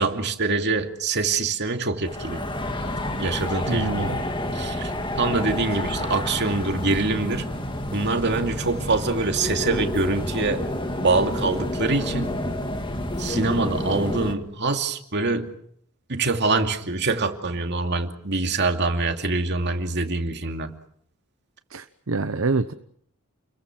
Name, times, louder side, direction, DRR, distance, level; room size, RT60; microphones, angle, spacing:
voice 1, 0.0-2.5 3.1-7.5 7.9-10.6 11.0-12.4 13.2-15.5 16.1-20.8, right 3 dB, 55° right, 2.6 m, -25 dB
sound 1, 2.1-14.4, left 1 dB, 25° left, 2.2 m, -29 dB
voice 2, 3.7-4.2 21.7-22.7, right 3 dB, 70° right, 0.9 m, -26 dB
30.0 x 22.0 x 6.2 m
head